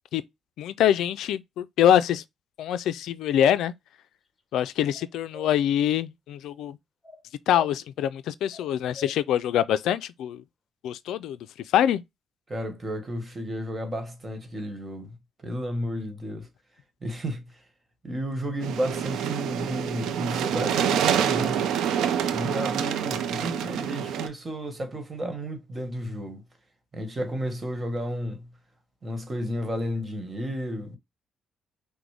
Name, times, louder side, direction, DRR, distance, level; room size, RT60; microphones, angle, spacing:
voice 1, 0.6-2.2 2.6-3.7 4.5-6.8 7.5-10.4 10.8-11.4 11.7-12.0, left 10 dB, 80° left, 0.3 m, -24 dB
sound 1, 4.9-5.5 7.0-7.7 8.5-9.2, left 1 dB, 25° left, 1.1 m, -44 dB
voice 2, 12.5-15.2 15.4-16.5 17.0-17.6 18.0-21.7 22.3-26.4 26.9-28.5 29.0-31.0, equal, 30° right, 1.4 m, -32 dB
sound 2, 18.6-24.3, right 9 dB, 80° right, 0.5 m, -27 dB
6.0 x 2.1 x 3.3 m
cardioid pair, 90°, 0 cm